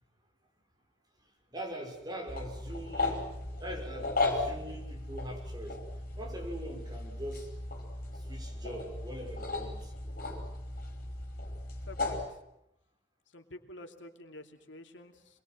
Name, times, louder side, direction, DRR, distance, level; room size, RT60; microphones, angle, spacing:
voice 1, 1.5-3.3 3.6-5.8 6.1-7.5 8.3-9.9, right 1 dB, 20° right, 1 dB, 6.0 m, -42 dB
sound 1, 2.3-12.2, left 2 dB, 50° left, 5.3 m, -36 dB
voice 2, 11.9-12.2 13.3-15.4, left 1 dB, 85° left, 5 dB, 2.8 m, -48 dB
26.5 x 22.0 x 7.7 m, 0.80 s
head